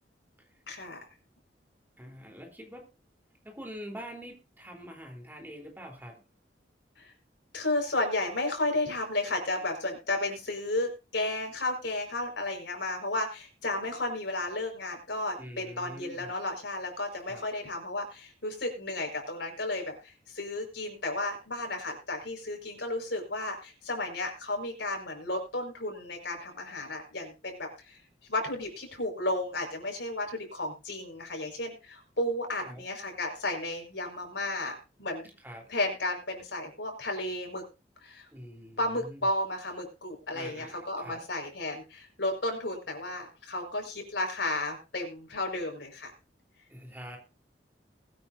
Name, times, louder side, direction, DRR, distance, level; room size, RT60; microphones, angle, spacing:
voice 1, 0.7-1.0 7.0-7.1 7.5-35.3 35.7-37.6 38.0-38.3 38.8-46.1, left 2 dB, 75° left, 3 dB, 5.1 m, -33 dB
voice 2, 2.0-2.8 3.4-6.2 15.4-16.3 17.3-17.4 32.6-32.8 35.4-35.7 38.3-39.3 40.3-41.2 46.7-47.2, equal, 10° right, 2 dB, 3.7 m, -44 dB
21.0 x 9.3 x 2.7 m, 0.30 s
head